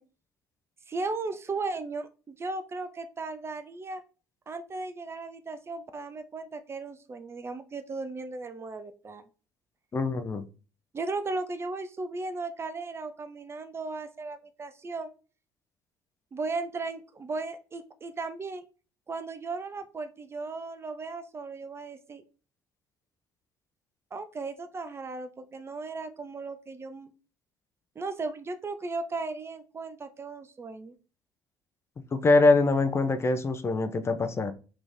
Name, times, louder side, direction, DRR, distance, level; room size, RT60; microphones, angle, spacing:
voice 1, 0.9-4.0 4.5-9.3 10.9-15.1 16.3-18.6 19.1-22.2 24.1-27.1 28.0-30.9, right 3 dB, 25° right, 0.5 m, -36 dB
voice 2, 9.9-10.5 32.1-34.5, left 3 dB, 30° left, 0.6 m, -23 dB
4.1 x 3.0 x 3.4 m
figure-of-eight pair, 55°, 10 cm